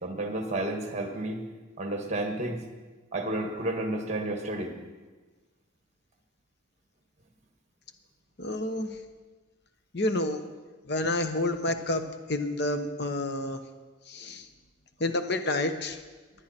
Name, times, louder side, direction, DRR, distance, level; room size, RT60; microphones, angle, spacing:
voice 1, 0.0-1.4 1.8-2.6 3.1-4.7, right 1 dB, 35° right, 4 dB, 1.6 m, -31 dB
voice 2, 8.4-8.9 9.9-10.4 10.9-12.0 12.3-13.6 14.1-14.5 15.0-16.0, left 2 dB, 50° left, 8 dB, 1.0 m, -29 dB
19.5 x 10.5 x 4.4 m, 1.3 s
head